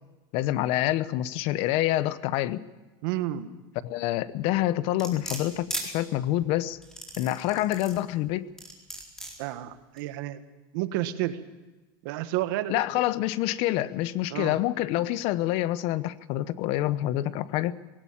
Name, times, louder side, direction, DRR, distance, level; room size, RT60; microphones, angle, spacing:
voice 1, 0.3-2.6 3.8-6.8 7.2-8.5 12.7-17.8, left 14 dB, 55° left, 16 dB, 0.9 m, -27 dB
voice 2, 3.0-3.5 9.4-10.4 10.7-11.4 12.0-12.8 14.3-14.6, right 14 dB, 70° right, 11 dB, 1.4 m, -30 dB
sound 1, 5.0-5.9 6.8-8.0 8.6-9.3 10.0-10.1, equal, 5° left, 4.2 m, -36 dB
19.0 x 17.0 x 8.7 m, 1.2 s
supercardioid pair, 135°, 11 cm